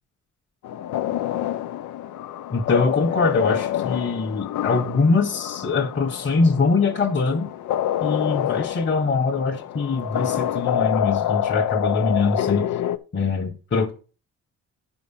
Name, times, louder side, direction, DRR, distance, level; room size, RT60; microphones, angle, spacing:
sound 1, 0.6-13.0, left 11 dB, 75° left, 0.8 m, -27 dB
voice 1, 2.5-7.5 8.0-12.7 13.1-13.9, left 4 dB, 40° left, 1.7 m, -23 dB
9.8 x 5.4 x 5.7 m
cardioid pair, 90°, 30 cm